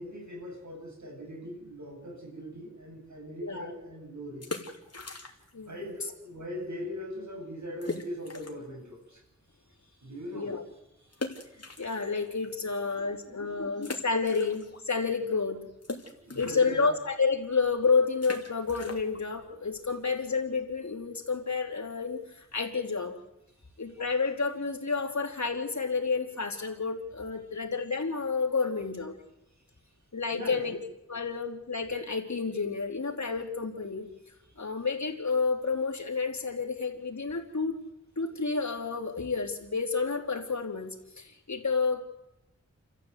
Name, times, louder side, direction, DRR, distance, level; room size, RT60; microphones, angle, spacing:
voice 1, 0.0-4.6 5.6-9.2 9.7-10.6 11.0-11.3 11.5-11.8 12.9-13.6 16.0-16.9 23.5-23.7 29.5-29.6 30.3-30.7 34.5-34.8, equal, 75° right, 1 dB, 7.6 m, -41 dB
voice 2, 3.4-3.7 5.5-5.7 10.3-10.6 11.8-15.6 16.4-23.2 23.8-29.2 30.1-30.8 31.1-34.1 34.6-37.8 38.2-42.0, left 4 dB, 70° left, 2 dB, 3.5 m, -30 dB
sound 1, 4.3-5.7 5.9-6.0 6.6-6.7 7.0-7.1 7.8-8.7 9.2-9.3 11.1-12.5 13.0-13.1 13.8-15.0 15.2-20.7, left 3 dB, 55° left, 3.1 m, -41 dB
29.5 x 14.5 x 8.3 m, 0.87 s
wide cardioid pair, 75°, 29 cm